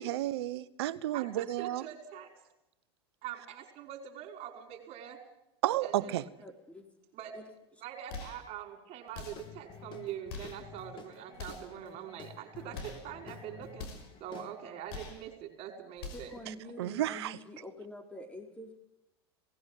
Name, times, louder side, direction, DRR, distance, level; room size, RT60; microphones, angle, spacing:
voice 1, 0.0-1.8 5.6-6.2 16.8-17.4, right 14 dB, 75° right, 16 dB, 1.1 m, -32 dB
voice 2, 1.1-2.3 3.2-5.2 5.8-6.2 7.1-7.4 7.8-13.9 14.2-16.3 16.6-16.7, right 10 dB, 50° right, 4 dB, 5.2 m, -44 dB
voice 3, 6.4-6.9 7.3-7.4 16.1-18.8, equal, 10° left, 4 dB, 4.5 m, -46 dB
sound 1, 8.1-8.5 9.1-9.6 10.3-10.7 11.3-11.8 12.7-13.1 13.8-14.2 14.9-15.3 16.0-16.4, left 4 dB, 70° left, 5.4 m, -44 dB
Guitar / Drum, 9.3-14.9, left 6 dB, 35° left, 3.0 m, -50 dB
18.0 x 16.0 x 9.1 m, 0.89 s
hypercardioid pair, 100°, 14 cm